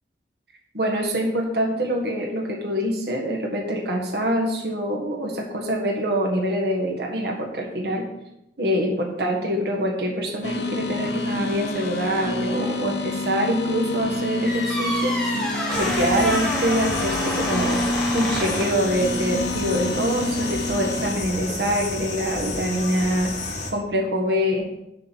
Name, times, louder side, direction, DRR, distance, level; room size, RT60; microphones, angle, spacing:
voice 1, 0.7-8.1 8.6-15.2 15.7-23.4 23.7-24.7, equal, 70° right, 0 dB, 1.6 m, -25 dB
sound 1, 10.4-21.2, left 2 dB, 80° left, 1.2 m, -28 dB
sound 2, 14.4-18.9, equal, 5° left, 1.6 m, -28 dB
sound 3, 15.7-23.7, left 2 dB, 45° left, 1.3 m, -31 dB
6.7 x 5.9 x 7.2 m, 0.85 s
head